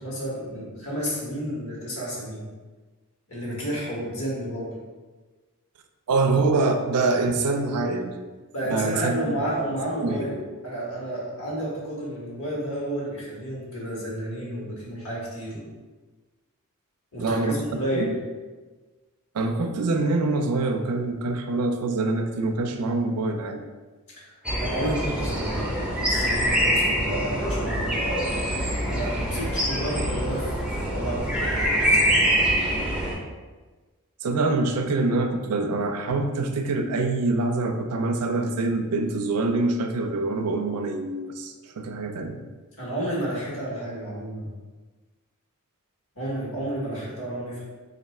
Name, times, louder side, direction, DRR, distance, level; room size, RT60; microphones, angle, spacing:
voice 1, 0.0-2.4 3.3-4.7 8.5-15.6 17.1-18.2 24.2-24.3 24.6-28.0 28.9-32.4 42.8-44.5 46.1-47.6, right 1 dB, 65° left, -5 dB, 1.4 m, -31 dB
voice 2, 6.1-8.2 8.6-9.2 10.0-10.2 17.2-17.6 17.9-18.1 19.3-23.6 34.2-42.4, right 3 dB, 85° right, 6 dB, 0.4 m, -25 dB
sound 1, 24.4-33.1, equal, 5° right, 0.6 m, -24 dB
3.2 x 2.6 x 4.2 m, 1.3 s
head